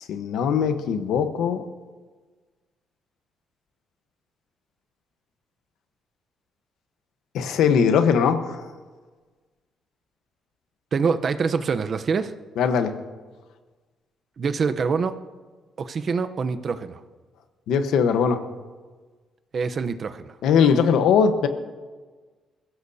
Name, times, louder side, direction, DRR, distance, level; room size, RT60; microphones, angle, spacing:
voice 1, 0.1-1.6 7.3-8.5 12.6-13.0 17.7-18.4 20.4-21.5, left 6 dB, 85° left, 8 dB, 1.1 m, -20 dB
voice 2, 10.9-12.3 14.4-15.1 15.8-17.0 19.5-20.4, right 5 dB, 50° right, 9 dB, 0.8 m, -25 dB
22.0 x 15.5 x 2.8 m, 1.4 s
cardioid pair, 90°, 0 cm